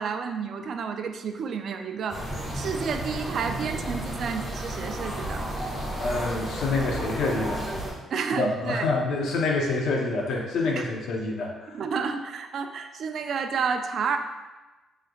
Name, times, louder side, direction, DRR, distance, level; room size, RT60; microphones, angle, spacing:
voice 1, 0.0-2.2 2.5-5.4 8.1-8.9 10.8-10.9 11.7-14.2, right 6 dB, 60° right, 6 dB, 0.3 m, -30 dB
sound 1, 2.1-7.9, right 1 dB, 10° right, 1.3 m, -32 dB
voice 2, 6.0-7.6 8.4-11.8, left 3 dB, 75° left, 0 dB, 0.7 m, -27 dB
4.8 x 3.1 x 2.3 m, 1.2 s
cardioid pair, 90°, 0 cm